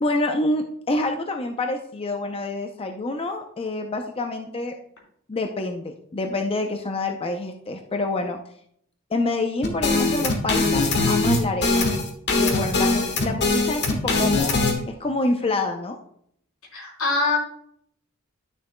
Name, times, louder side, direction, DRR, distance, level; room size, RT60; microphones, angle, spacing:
voice 1, 0.0-4.7 5.3-8.4 9.1-11.9 12.4-16.0, left 2 dB, 25° left, 5 dB, 0.5 m, -27 dB
sound 1, 9.6-14.7, left 3 dB, 55° left, 1.4 m, -21 dB
voice 2, 16.7-17.4, left 3 dB, 90° left, -1 dB, 3.4 m, -23 dB
11.5 x 6.6 x 2.2 m, 0.67 s
head